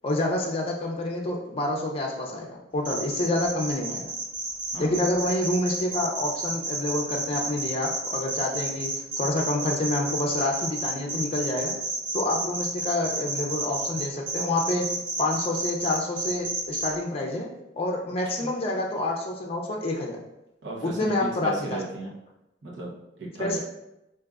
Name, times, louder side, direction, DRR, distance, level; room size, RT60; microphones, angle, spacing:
voice 1, 0.0-4.1 4.8-8.9 9.2-11.7 12.1-14.9 15.2-17.5 17.8-20.2 20.8-21.8 23.4-23.6, left 2 dB, 35° left, 0 dB, 0.4 m, -28 dB
sound 1, 2.9-16.9, right 2 dB, 30° right, 0.8 m, -31 dB
voice 2, 4.7-5.1 18.4-18.5 20.6-22.1 22.6-23.6, right 2 dB, 85° right, -4 dB, 0.8 m, -35 dB
5.0 x 2.5 x 2.4 m, 0.90 s
head